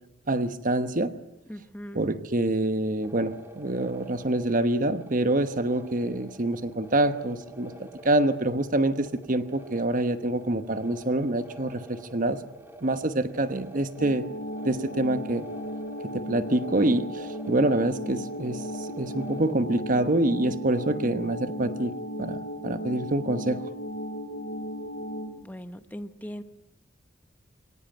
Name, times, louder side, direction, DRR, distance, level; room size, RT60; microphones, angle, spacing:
voice 1, 0.3-1.1 1.9-7.7 8.0-12.4 12.8-14.3 14.6-15.5 16.1-18.6 19.0-21.9 22.2-23.6, right 1 dB, 45° right, 1.1 m, -26 dB
voice 2, 1.5-2.1 25.4-26.4, equal, 10° left, 1.0 m, -39 dB
sound 1, 3.0-19.5, right 1 dB, 10° right, 2.5 m, -47 dB
sound 2, 14.0-25.3, equal, 60° left, 2.8 m, -35 dB
24.0 x 18.0 x 9.2 m
head